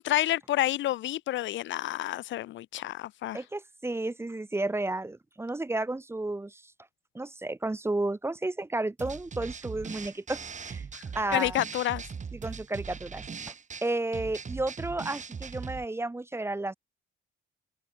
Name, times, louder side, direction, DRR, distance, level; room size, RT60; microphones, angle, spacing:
voice 1, 0.0-3.4 10.9-11.0 11.3-12.1, left 14 dB, 70° left, 0.5 m, -29 dB
voice 2, 3.3-6.6 7.1-10.8 11.1-11.6 12.3-13.2 13.8-16.7, right 2 dB, 10° right, 0.8 m, -32 dB
sound 1, 9.0-15.8, right 6 dB, 40° right, 2.3 m, -40 dB
cardioid pair, 90°, 20 cm